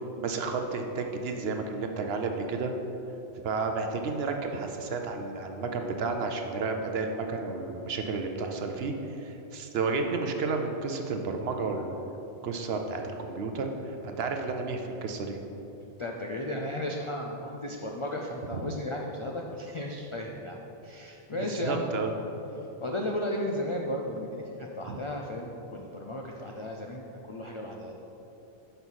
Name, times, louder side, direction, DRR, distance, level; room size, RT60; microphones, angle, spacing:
voice 1, 0.2-2.7 3.4-12.0 12.4-15.4 18.5-18.6 21.4-22.1 24.9-25.0, right 4 dB, 65° right, 4 dB, 0.8 m, -32 dB
voice 2, 16.0-22.0 22.8-27.9, left 1 dB, 55° left, 0 dB, 0.3 m, -34 dB
5.6 x 5.4 x 6.2 m, 3.0 s
omnidirectional pair, 1.2 m